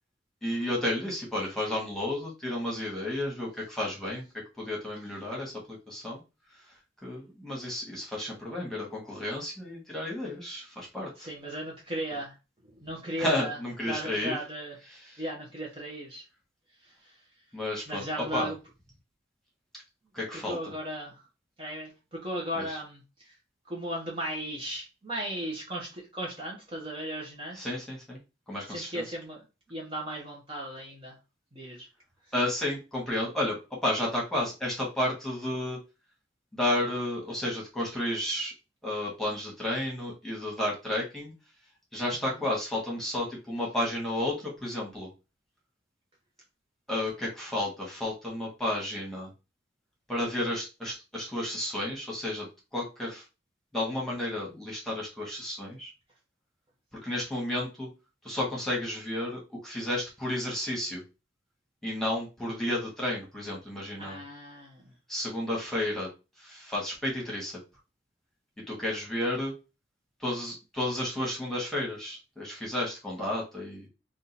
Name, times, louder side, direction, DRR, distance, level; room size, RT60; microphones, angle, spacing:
voice 1, 0.4-4.2 4.6-6.2 7.0-11.3 13.2-14.4 14.9-15.2 17.5-18.5 20.1-20.7 22.5-22.8 27.5-28.2 28.5-29.0 32.3-35.8 36.5-38.5 38.8-41.3 41.9-45.1 46.9-49.3 50.1-52.5 52.7-53.2 53.7-55.9 57.0-57.9 58.2-61.0 61.8-64.2 65.1-66.1 66.4-67.6 68.7-69.5 70.2-73.9, left 1 dB, ahead, -3 dB, 1.5 m, -32 dB
voice 2, 11.2-12.3 12.8-13.6 13.9-14.7 15.2-16.2 17.9-18.5 20.5-21.1 21.6-23.0 23.7-27.7 28.7-29.4 29.7-31.1 31.5-31.9 64.0-64.8, equal, 30° right, -3 dB, 1.0 m, -36 dB
3.6 x 2.5 x 4.2 m, 0.28 s
head